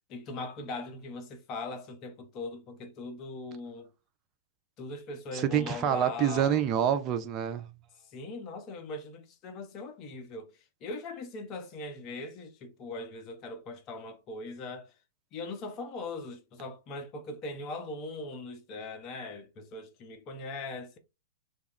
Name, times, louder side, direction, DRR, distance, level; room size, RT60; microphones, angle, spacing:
voice 1, 0.1-3.9 4.8-6.9 8.0-14.9 15.3-21.0, left 2 dB, 35° left, 0.7 m, -40 dB
voice 2, 5.3-7.7, right 9 dB, 35° right, 0.4 m, -27 dB
2.3 x 2.1 x 3.6 m
hypercardioid pair, 110°, 0 cm